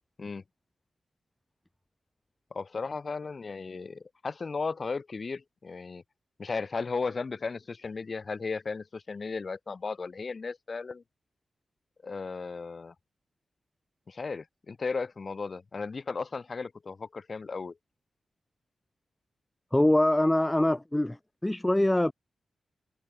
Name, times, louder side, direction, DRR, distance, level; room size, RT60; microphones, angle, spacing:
voice 1, 2.5-6.0 6.4-11.0 12.0-12.9 14.1-17.8, left 4 dB, 40° left, 2.3 m, -35 dB
voice 2, 19.7-22.1, left 1 dB, 10° left, 0.6 m, -24 dB
wide cardioid pair, 120°, 0 cm